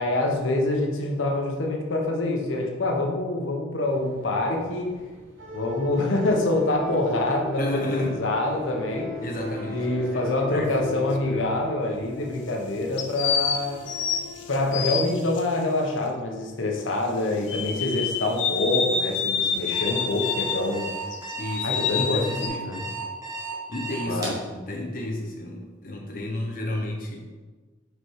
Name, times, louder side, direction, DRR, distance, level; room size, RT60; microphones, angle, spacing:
voice 1, 0.0-5.0 5.5-9.1 9.7-13.9 14.5-20.9 21.6-22.8 24.1-24.4, left 2 dB, 85° left, 1 dB, 0.9 m, -26 dB
sound 1, 3.8-14.7, left 1 dB, 85° right, 1.2 m, -38 dB
voice 2, 7.6-8.2 9.2-11.0 21.4-23.0 23.7-27.2, left 1 dB, 45° left, -1 dB, 0.8 m, -33 dB
sound 2, 10.6-11.5 13.0-15.4 17.5-20.7 21.1-22.5, left 7 dB, 70° left, 0.5 m, -28 dB
Alarm, 19.5-24.4, right 3 dB, 20° right, 1.3 m, -34 dB
5.0 x 4.4 x 4.7 m, 1.3 s
head